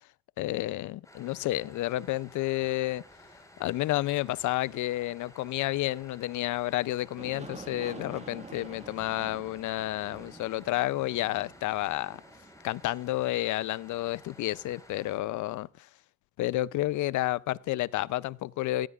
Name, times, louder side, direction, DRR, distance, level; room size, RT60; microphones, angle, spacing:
voice 1, 0.4-3.0 3.6-12.2 12.6-15.9 16.4-18.9, left 16 dB, 75° left, 0.5 m, -30 dB
sound 1, 1.0-15.2, left 1 dB, 10° left, 4.3 m, -54 dB
Aircraft, 7.2-13.9, right 3 dB, 20° right, 1.5 m, -48 dB
18.0 x 16.0 x 2.4 m
cardioid pair, 90°, 30 cm